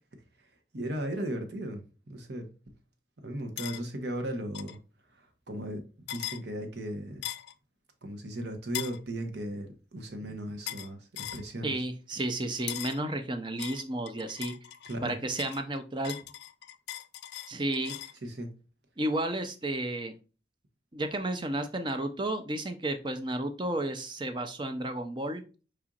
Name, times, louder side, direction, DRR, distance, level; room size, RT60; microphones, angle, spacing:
voice 1, 0.7-2.5 3.2-4.8 5.5-7.2 8.0-11.7 14.9-15.1 18.2-18.5, right 1 dB, 65° right, 1.0 m, -36 dB
sound 1, 3.6-3.8 4.5-4.8 6.1-6.4 7.2-7.5 8.7-9.0 10.7-10.9 11.2-11.5 12.7-13.0 13.6-15.0 15.4-18.2, left 13 dB, 65° left, 0.4 m, -39 dB
voice 2, 11.6-14.5 15.0-16.2 17.5-17.9 19.0-20.1 20.9-25.4, right 1 dB, 25° right, 0.6 m, -32 dB
5.1 x 4.4 x 2.4 m
head